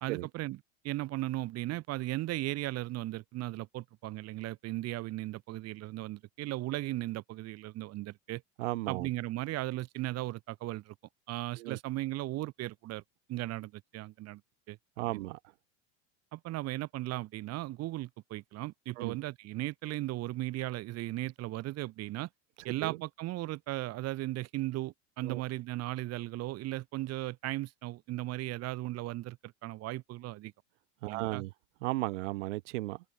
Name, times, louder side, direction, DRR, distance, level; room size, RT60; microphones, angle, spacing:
voice 1, 0.0-8.4 8.9-10.9 11.3-13.0 13.3-14.4 14.7-14.8 15.1-15.2 16.3-22.3 22.6-30.5 31.1-31.4, right 17 dB, 45° right, 1.2 m, -37 dB
voice 2, 8.6-9.1 11.6-11.8 15.0-15.4 19.0-19.2 22.8-23.0 25.2-25.4 31.0-31.5 31.8-33.0, right 20 dB, 80° right, 1.0 m, -35 dB
supercardioid pair, 105°, 36 cm